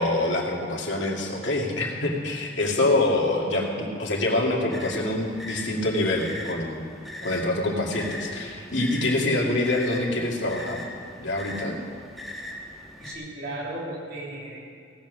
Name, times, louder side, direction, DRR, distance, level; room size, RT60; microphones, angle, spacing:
voice 1, 0.0-6.9 7.2-10.9 11.2-11.8, left 2 dB, 80° left, -1 dB, 2.2 m, -25 dB
sound 1, 4.7-13.1, left 1 dB, ahead, 1.6 m, -40 dB
voice 2, 13.0-14.6, right 1 dB, 60° right, -4 dB, 3.3 m, -35 dB
17.5 x 7.4 x 6.3 m, 2.4 s
head